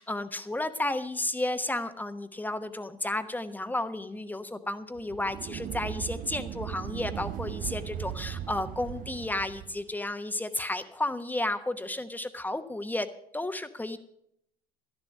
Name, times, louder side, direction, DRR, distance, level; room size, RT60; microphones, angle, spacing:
voice 1, 0.0-13.1 13.3-14.0, left 2 dB, 10° left, 10 dB, 1.0 m, -32 dB
sound 1, 5.0-9.8, right 11 dB, 45° right, 0.6 m, -38 dB
12.0 x 11.0 x 5.4 m, 0.72 s
hypercardioid pair, 75°, 19 cm